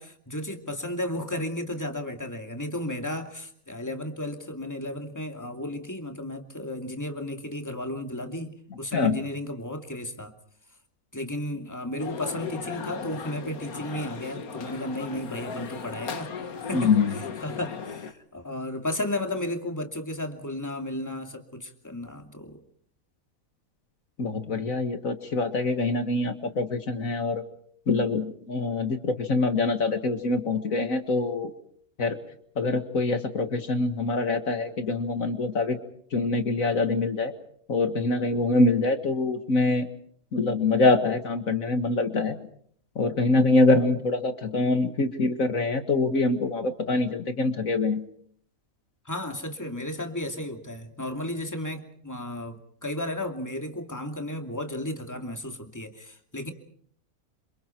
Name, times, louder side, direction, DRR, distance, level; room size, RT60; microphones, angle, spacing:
voice 1, 0.0-10.3 11.1-16.3 16.7-22.6 49.0-56.5, left 1 dB, 10° left, 4 dB, 2.6 m, -34 dB
sound 1, 12.0-18.1, left 6 dB, 85° left, 1.9 m, -36 dB
voice 2, 16.7-17.1 24.2-27.4 27.9-31.5 32.0-32.2 32.6-35.8 36.1-37.3 37.7-39.9 40.3-42.4 43.0-48.0, left 3 dB, 70° left, 8 dB, 2.2 m, -24 dB
29.0 x 27.0 x 4.6 m, 0.62 s
omnidirectional pair, 1.5 m